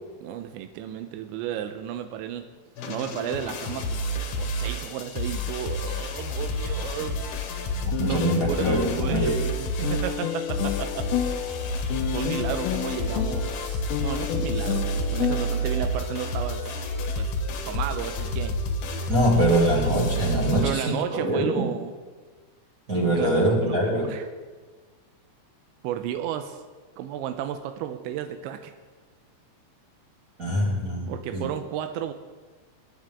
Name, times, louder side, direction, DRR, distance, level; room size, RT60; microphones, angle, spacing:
voice 1, 0.2-2.5 2.9-4.0 4.4-7.3 8.1-11.1 12.1-16.9 17.2-17.3 17.7-18.6 20.6-21.9 23.2-23.3 23.6-24.3 25.8-26.6 27.0-28.6 31.1-32.1, right 10 dB, 90° right, 8 dB, 3.0 m, -33 dB
sound 1, 2.8-20.7, equal, 60° left, 2.4 m, -29 dB
sound 2, 7.9-16.0, left 11 dB, 80° left, 2.6 m, -31 dB
voice 2, 8.0-9.5 19.1-21.7 22.9-24.1 30.4-31.5, right 1 dB, 25° right, -3 dB, 2.0 m, -24 dB
26.0 x 9.7 x 3.6 m, 1.4 s
omnidirectional pair, 5.2 m